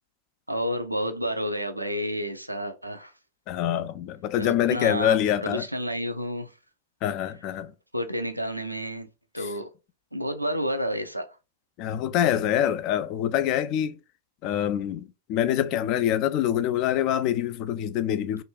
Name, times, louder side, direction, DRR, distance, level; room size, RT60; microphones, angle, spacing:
voice 1, 0.5-3.1 4.4-6.5 7.9-9.1 9.3-9.7 10.1-11.4, equal, 90° right, 0.4 m, -30 dB
voice 2, 3.5-5.7 7.0-7.7 11.8-14.0 14.4-18.4, left 11 dB, 40° left, 0.3 m, -25 dB
3.8 x 2.3 x 2.2 m
figure-of-eight pair, 90°, 0 cm